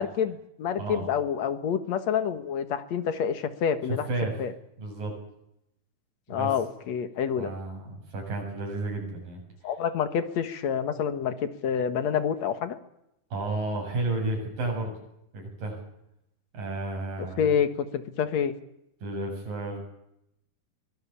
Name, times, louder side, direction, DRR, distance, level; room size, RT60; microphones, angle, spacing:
voice 1, 0.0-4.1 4.4-4.5 6.3-7.5 9.6-12.8 17.4-18.5, left 7 dB, 60° left, 11 dB, 2.5 m, -28 dB
voice 2, 3.9-4.3 4.8-5.1 6.3-6.5 7.4-9.4 13.3-15.0 15.3-15.8 16.5-17.5 19.0-19.8, right 2 dB, 80° right, 1 dB, 9.3 m, -32 dB
23.5 x 19.5 x 8.6 m, 0.81 s
omnidirectional pair, 3.8 m